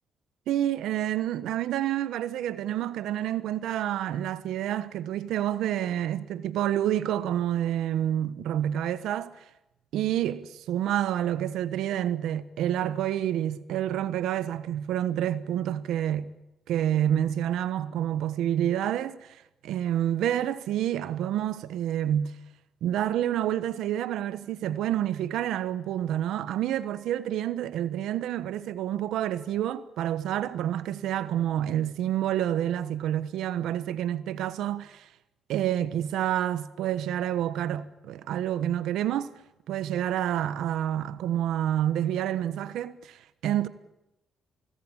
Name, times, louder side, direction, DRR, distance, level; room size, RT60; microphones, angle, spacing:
voice 1, 0.5-9.4 9.9-16.3 16.7-19.4 19.6-22.4 22.8-35.1 35.5-39.3 39.7-43.7, right 11 dB, 85° right, 1.2 m, -28 dB
24.0 x 19.5 x 8.8 m
cardioid pair, 90°, 0 cm